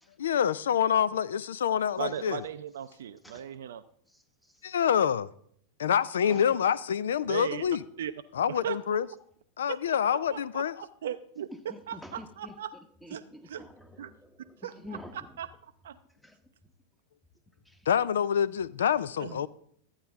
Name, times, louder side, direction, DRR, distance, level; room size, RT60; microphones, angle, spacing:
voice 1, 0.2-2.4 4.6-5.3 5.8-7.8 8.3-9.1 9.6-10.7 17.9-19.5, left 8 dB, 80° left, 0.3 m, -26 dB
voice 2, 2.0-3.8 4.8-5.0 7.3-7.6 8.0-8.1 8.5-9.0 9.7-10.7 11.0-11.5 11.9-12.7 13.1-13.2 13.5-13.6 14.0-14.1 14.6-14.7 15.4-16.0 19.2-19.4, right 10 dB, 75° right, 0.4 m, -37 dB
voice 3, 4.1-4.8 6.3-6.5 8.4-8.5 11.5-15.4 16.2-16.4 17.6-17.9 19.3-19.4, left 1 dB, 5° left, 1.0 m, -48 dB
12.5 x 8.8 x 3.5 m
hypercardioid pair, 100°, 0 cm